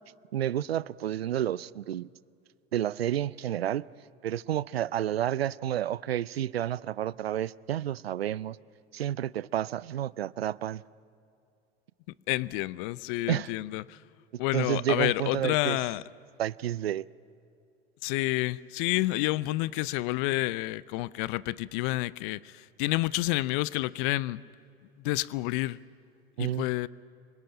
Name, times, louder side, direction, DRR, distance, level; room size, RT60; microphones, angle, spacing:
voice 1, 0.3-2.1 2.7-3.8 4.2-8.6 8.9-10.8 13.3-13.5 14.5-15.8 16.4-17.0 26.4-26.7, right 11 dB, 80° right, 0.6 m, -30 dB
voice 2, 12.3-14.0 14.4-16.0 18.0-24.4 25.0-25.8 26.4-26.9, left 19 dB, 55° left, 0.7 m, -29 dB
26.5 x 24.0 x 8.9 m
figure-of-eight pair, 75°, 30 cm